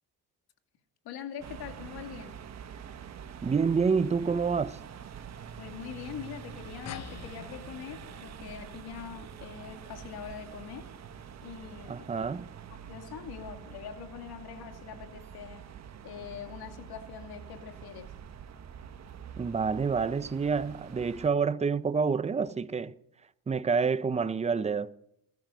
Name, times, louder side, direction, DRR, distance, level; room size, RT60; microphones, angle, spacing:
voice 1, 1.0-2.4 5.6-10.9 11.4-12.1 12.9-15.7 16.0-18.1, left 8 dB, 70° left, 2.6 m, -43 dB
sound 1, 1.4-21.3, right 8 dB, 45° right, 1.3 m, -46 dB
voice 2, 3.4-4.8 11.9-12.5 19.4-22.9 23.5-24.9, right 5 dB, 15° right, 0.6 m, -28 dB
sound 2, 6.9-11.7, left 11 dB, 40° left, 0.8 m, -49 dB
20.5 x 13.0 x 4.0 m
cardioid pair, 120°, 39 cm